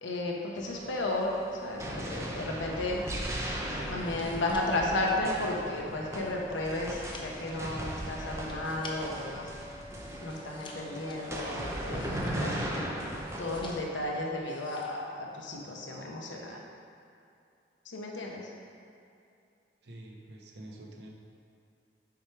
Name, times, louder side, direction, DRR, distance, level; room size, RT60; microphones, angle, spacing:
voice 1, 0.0-3.1 3.8-9.5 10.2-12.6 13.4-16.6 17.8-18.5, left 2 dB, 90° left, -1 dB, 0.9 m, -33 dB
sound 1, 0.6-13.8, right 1 dB, 15° right, 0.7 m, -38 dB
sound 2, 3.9-9.3 9.7-12.7 13.2-14.1 14.4-15.1 15.4-15.8, left 2 dB, 25° left, 0.6 m, -50 dB
voice 2, 19.8-21.1, right 1 dB, 65° right, 0 dB, 0.9 m, -47 dB
7.2 x 4.7 x 4.7 m, 2.5 s
head